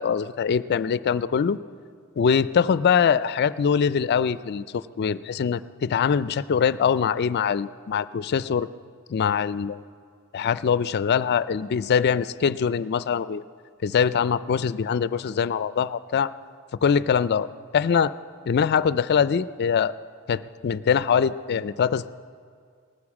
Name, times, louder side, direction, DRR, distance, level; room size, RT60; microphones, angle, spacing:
voice 1, 0.0-1.6 2.2-8.7 9.1-9.8 10.3-13.4 13.8-16.3 16.8-18.1 18.5-19.9 20.3-22.2, left 7 dB, 50° left, 16 dB, 0.4 m, -23 dB
18.5 x 9.7 x 7.2 m, 2.1 s
head